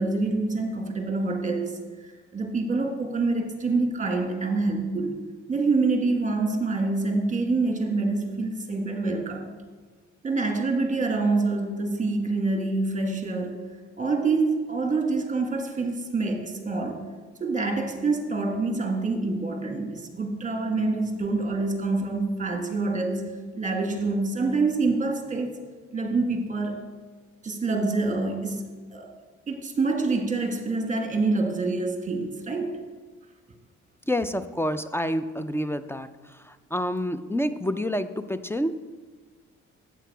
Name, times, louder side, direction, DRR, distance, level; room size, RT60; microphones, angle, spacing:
voice 1, 0.0-1.8 2.0-5.2 5.5-9.5 10.2-13.7 14.0-17.0 17.4-25.5 25.9-26.8 27.4-28.6 28.9-29.1 29.5-32.9, right 3 dB, 25° right, 3 dB, 1.5 m, -26 dB
voice 2, 34.1-38.7, equal, 10° left, 12 dB, 0.4 m, -28 dB
8.2 x 7.6 x 4.6 m, 1.4 s
cardioid pair, 90°, 30 cm